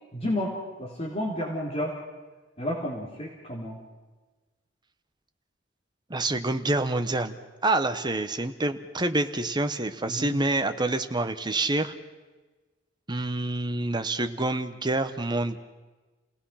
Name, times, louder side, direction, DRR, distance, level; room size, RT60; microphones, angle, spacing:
voice 1, 0.1-0.5 0.8-1.9 2.6-3.8 10.1-10.4, left 1 dB, 30° left, -3 dB, 3.4 m, -31 dB
voice 2, 6.1-7.3 7.6-11.9 13.1-15.6, right 2 dB, 25° right, 8 dB, 1.1 m, -27 dB
29.5 x 18.0 x 5.8 m, 1.3 s
head